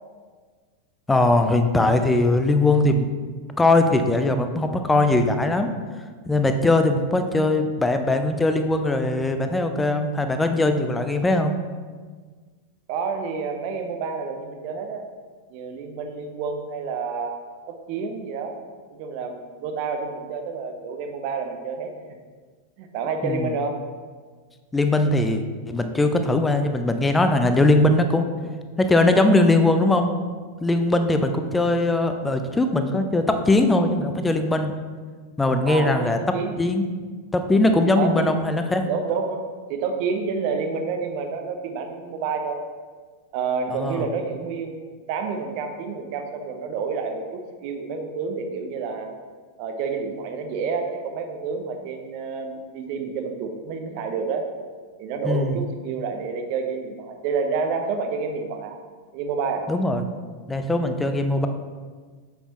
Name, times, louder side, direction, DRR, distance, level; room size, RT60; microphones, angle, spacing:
voice 1, 1.1-3.1 3.6-5.7 6.3-11.5 23.2-23.5 24.7-28.3 28.8-30.1 30.6-34.7 35.4-36.2 36.6-36.9 37.3-38.8 43.7-44.0 55.2-55.6 59.7-60.0 60.5-61.5, left 2 dB, 10° left, 7 dB, 0.6 m, -20 dB
voice 2, 12.9-15.1 15.5-17.4 17.7-18.6 19.0-22.2 22.8-23.8 35.6-36.6 37.9-38.4 38.9-39.4 39.7-42.6 43.3-49.1 49.6-54.5 55.0-58.8 59.1-59.7, right 5 dB, 45° right, 5 dB, 0.8 m, -29 dB
7.2 x 6.9 x 3.0 m, 1.5 s
figure-of-eight pair, 90°, 0 cm